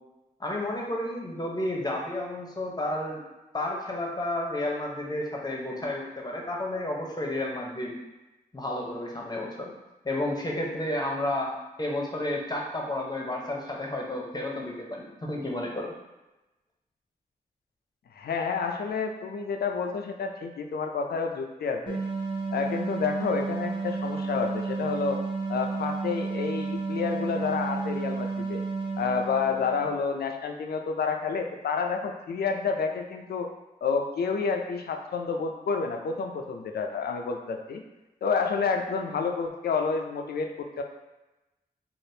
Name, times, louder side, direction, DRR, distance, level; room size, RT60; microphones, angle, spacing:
voice 1, 0.4-3.2 3.5-7.9 8.5-9.7 10.0-11.5 11.8-15.9, left 1 dB, 25° left, -1 dB, 0.7 m, -31 dB
voice 2, 18.1-22.0 22.5-25.2 25.5-28.6 29.0-33.5 33.8-37.8 38.2-40.8, left 5 dB, 80° left, 4 dB, 0.4 m, -29 dB
sound 1, 21.9-30.0, right 4 dB, 30° right, 0.7 m, -32 dB
3.3 x 2.5 x 2.7 m, 1.0 s
cardioid pair, 55°, 16 cm